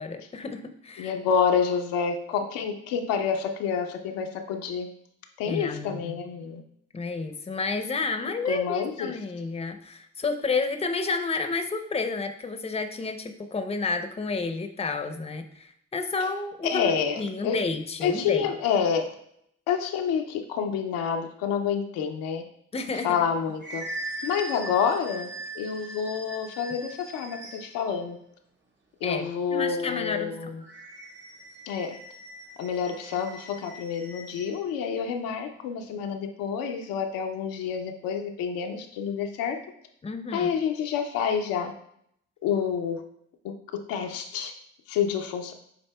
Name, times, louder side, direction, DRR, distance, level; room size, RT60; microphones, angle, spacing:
voice 1, 0.0-1.1 5.4-6.2 6.9-18.5 22.7-23.2 29.0-29.2 29.5-30.5 40.0-40.5, left 4 dB, 20° left, 8 dB, 0.6 m, -30 dB
voice 2, 1.0-4.9 5.4-6.6 8.5-9.2 16.6-17.6 18.0-19.1 19.7-22.4 23.0-23.9 24.2-28.2 29.0-30.6 31.7-32.0 32.6-39.6 40.3-41.7 42.4-43.1 43.4-44.5 44.9-45.5, left 7 dB, 80° left, 4 dB, 0.5 m, -28 dB
sound 1, 23.1-27.9 30.6-34.6, right 2 dB, 35° right, 1.0 m, -41 dB
7.5 x 2.7 x 2.2 m, 0.71 s
hypercardioid pair, 45°, 34 cm